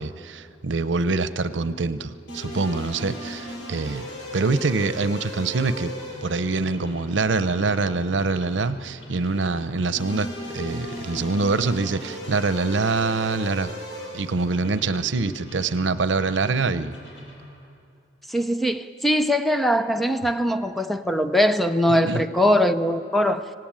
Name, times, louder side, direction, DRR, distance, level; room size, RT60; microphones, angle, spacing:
voice 1, 0.0-5.9 6.2-13.7 14.1-16.9 21.9-22.2, right 3 dB, 90° right, 0.7 m, -25 dB
sound 1, 2.3-17.6, equal, 75° left, 7.5 m, -38 dB
voice 2, 18.3-23.4, equal, ahead, 0.6 m, -21 dB
25.5 x 17.5 x 8.9 m
head